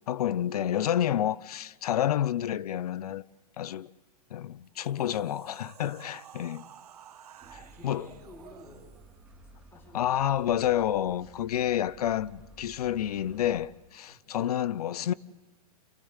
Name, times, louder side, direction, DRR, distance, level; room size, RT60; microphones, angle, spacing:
voice 1, 0.1-3.3 3.6-3.9 4.3-6.7 7.5-8.1 9.9-15.1, left 11 dB, 80° left, 0.7 m, -29 dB
sound 1, 4.6-9.2, right 9 dB, 80° right, 1.9 m, -52 dB
sound 2, 7.4-13.7, right 1 dB, 5° right, 4.0 m, -54 dB
voice 2, 7.7-8.9 9.6-10.6 14.1-14.2, left 1 dB, 10° left, 4.3 m, -52 dB
27.5 x 16.0 x 8.2 m
hypercardioid pair, 145°, 19 cm